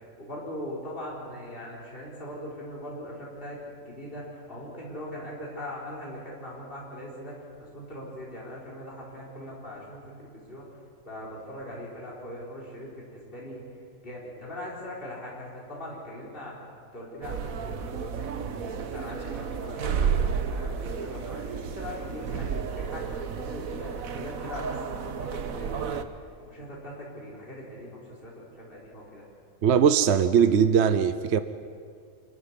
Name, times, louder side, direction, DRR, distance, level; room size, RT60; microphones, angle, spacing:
voice 1, 0.0-10.6 11.1-13.6 14.0-18.5 18.8-29.3, left 1 dB, 40° left, -5 dB, 4.4 m, -41 dB
sound 1, 17.2-26.0, right 6 dB, 90° right, 1.5 m, -32 dB
voice 2, 29.6-31.4, right 7 dB, 60° right, 11 dB, 0.9 m, -20 dB
26.0 x 14.5 x 9.9 m, 2.2 s
omnidirectional pair, 1.4 m